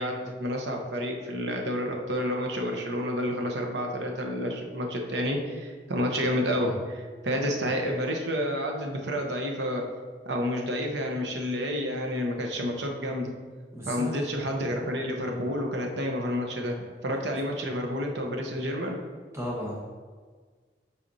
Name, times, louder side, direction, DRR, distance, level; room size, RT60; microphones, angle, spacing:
voice 1, 0.0-9.8 10.3-13.3 13.9-19.0, equal, 80° right, 2 dB, 0.8 m, -30 dB
voice 2, 13.7-14.1 19.3-19.8, equal, 15° right, -3 dB, 1.0 m, -34 dB
8.2 x 4.2 x 2.7 m, 1.5 s
head